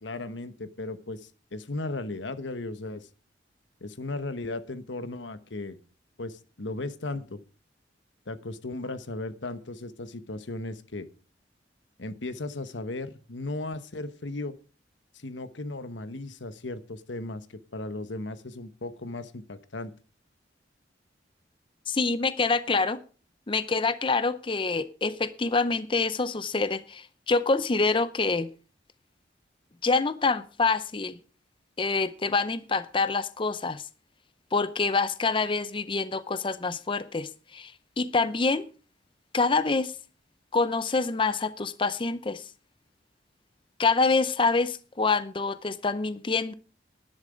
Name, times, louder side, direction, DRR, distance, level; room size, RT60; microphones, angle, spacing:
voice 1, 0.0-3.1 3.8-5.8 6.2-7.4 8.3-11.1 12.0-14.6 15.1-19.9, left 2 dB, 85° left, 12 dB, 1.1 m, -36 dB
voice 2, 21.9-23.0 23.5-28.5 29.8-31.2 31.8-33.8 34.5-37.7 38.0-38.6 39.3-39.9 40.5-42.4 43.8-46.5, left 4 dB, 30° left, 14 dB, 0.6 m, -26 dB
11.5 x 10.5 x 5.1 m, 0.36 s
head